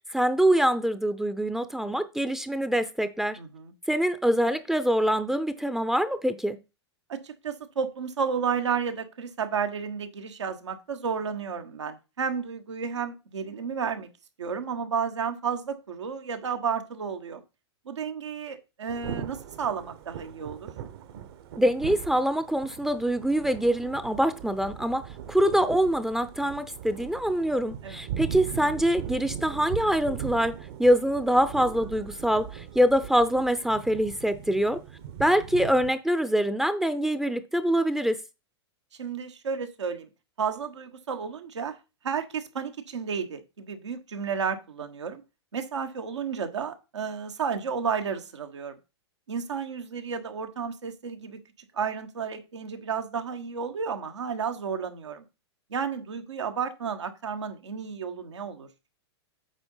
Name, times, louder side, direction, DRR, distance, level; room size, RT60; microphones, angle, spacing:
voice 1, 0.1-3.4 3.9-6.6 21.6-34.8 35.2-38.2, equal, 5° right, 0.5 m, -24 dB
voice 2, 3.4-3.7 7.1-14.1 14.4-17.4 17.8-20.7 27.8-28.0 39.0-40.1 40.4-41.8 42.0-45.2 45.5-48.7 49.3-51.4 51.7-55.2 55.7-58.7, right 6 dB, 85° right, 1.3 m, -32 dB
Thunder / Rain, 18.9-35.9, right 9 dB, 60° right, 1.1 m, -40 dB
8.2 x 3.8 x 5.5 m
hypercardioid pair, 115°, 15 cm